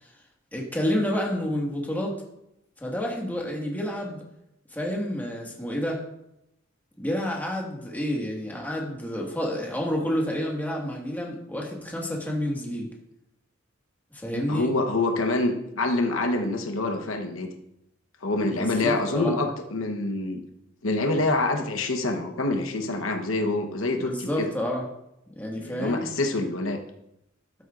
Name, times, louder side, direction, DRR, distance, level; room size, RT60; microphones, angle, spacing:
voice 1, 0.5-2.2 2.8-4.2 4.7-6.0 7.0-12.9 14.2-14.7 18.5-19.4 24.0-24.8 25.3-26.0, equal, 10° left, -1 dB, 1.7 m, -29 dB
voice 2, 14.3-17.5 18.2-20.4 20.8-24.5 25.5-26.8, left 2 dB, 85° left, 4 dB, 1.0 m, -26 dB
13.0 x 7.8 x 2.5 m, 0.81 s
head